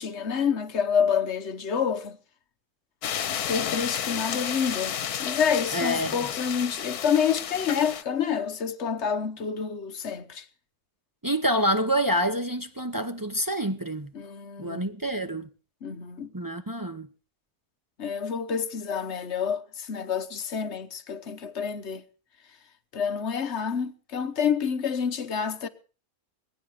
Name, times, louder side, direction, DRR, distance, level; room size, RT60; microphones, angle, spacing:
voice 1, 0.0-2.2 3.5-10.5 14.1-14.9 15.8-16.3 18.0-22.0 22.9-25.7, left 7 dB, 50° left, 1.2 m, -28 dB
sound 1, 3.0-8.0, left 9 dB, 80° left, 1.4 m, -31 dB
voice 2, 5.7-6.1 11.2-14.1 14.6-15.5 16.3-17.1, equal, 25° right, 0.5 m, -27 dB
21.0 x 9.2 x 6.5 m
omnidirectional pair, 1.6 m